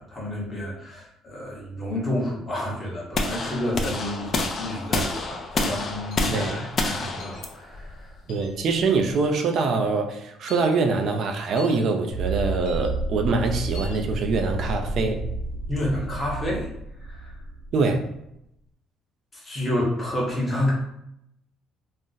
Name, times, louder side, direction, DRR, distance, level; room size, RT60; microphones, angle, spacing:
voice 1, 0.0-8.2 15.7-16.7 17.0-17.4 19.3-20.7, left 1 dB, 15° left, 0.8 m, -30 dB
sound 1, 3.1-9.2, left 3 dB, 35° left, 0.3 m, -29 dB
sound 2, 6.1-6.3 7.2-7.4 8.3-8.5 9.4-9.6 10.5-10.7 11.6-11.8 12.6-12.9 13.7-14.0, left 1 dB, 75° left, 0.6 m, -43 dB
voice 2, 6.3-6.7 8.3-15.3 17.7-18.1, right 4 dB, 50° right, 0.4 m, -24 dB
sound 3, 12.1-18.3, right 2 dB, 70° right, 0.8 m, -31 dB
2.4 x 2.0 x 3.9 m
cardioid pair, 160°, 0 cm